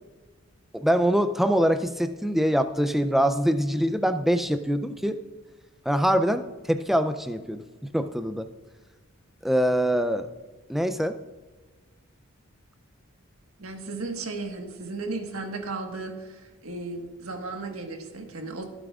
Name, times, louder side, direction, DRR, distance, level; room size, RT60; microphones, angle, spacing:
voice 1, 0.7-5.2 5.9-8.5 9.4-10.3 10.7-11.2, equal, ahead, 9 dB, 0.4 m, -24 dB
voice 2, 13.6-18.6, right 3 dB, 85° right, 4 dB, 1.4 m, -35 dB
15.5 x 8.8 x 2.4 m, 1.3 s
head